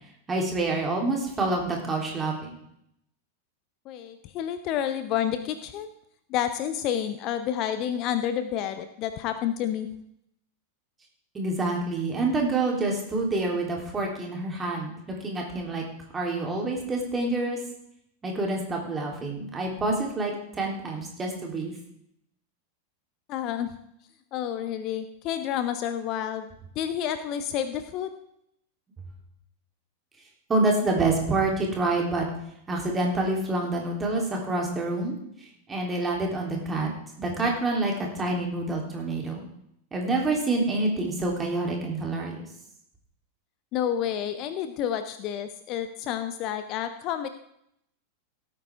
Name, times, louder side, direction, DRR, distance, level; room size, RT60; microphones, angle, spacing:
voice 1, 0.3-2.6 11.3-15.8 16.1-17.6 18.2-21.7 30.5-32.2 32.7-35.2 35.7-36.9 37.2-39.4 39.9-42.4, right 2 dB, 15° right, 0 dB, 3.3 m, -27 dB
voice 2, 3.9-5.9 6.3-9.9 23.3-23.7 24.3-28.1 43.7-47.3, left 10 dB, 40° left, 11 dB, 0.7 m, -29 dB
17.0 x 8.9 x 3.6 m, 0.75 s
figure-of-eight pair, 90°, 0 cm